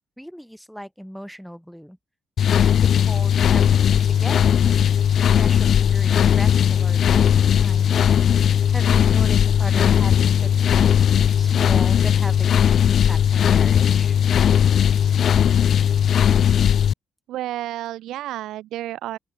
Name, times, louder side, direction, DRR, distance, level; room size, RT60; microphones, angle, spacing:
voice 1, 0.2-2.0 2.8-4.6 5.2-8.1 8.7-14.2, equal, ahead, 2.4 m, -37 dB
sound 1, 2.4-16.9, left 9 dB, 60° left, 0.5 m, -18 dB
voice 2, 17.3-19.2, right 14 dB, 85° right, 3.4 m, -31 dB
open air
cardioid pair, 90°, 0 cm